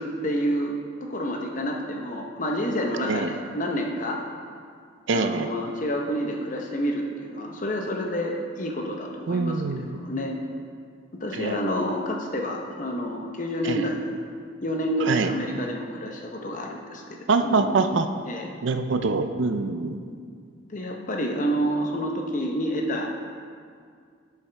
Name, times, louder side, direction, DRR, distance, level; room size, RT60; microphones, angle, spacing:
voice 1, 0.0-4.2 5.1-10.3 11.2-14.2 14.6-17.0 17.4-17.7 18.3-18.5 20.7-23.2, equal, 40° left, 1 dB, 0.8 m, -29 dB
voice 2, 5.1-5.5 9.3-10.1 11.3-11.6 13.6-13.9 15.0-15.3 17.3-18.1 18.6-20.0, right 4 dB, 70° right, 8 dB, 0.5 m, -24 dB
8.7 x 7.2 x 3.3 m, 2.1 s
head